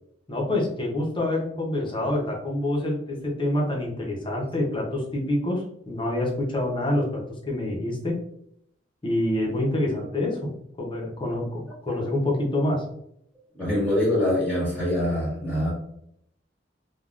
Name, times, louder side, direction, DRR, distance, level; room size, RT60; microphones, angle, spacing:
voice 1, 0.3-8.2 9.0-10.5 10.8-12.8, left 1 dB, 25° left, -1 dB, 0.7 m, -26 dB
voice 2, 13.5-15.7, left 1 dB, 10° left, -9 dB, 1.1 m, -24 dB
3.4 x 2.2 x 2.4 m, 0.73 s
head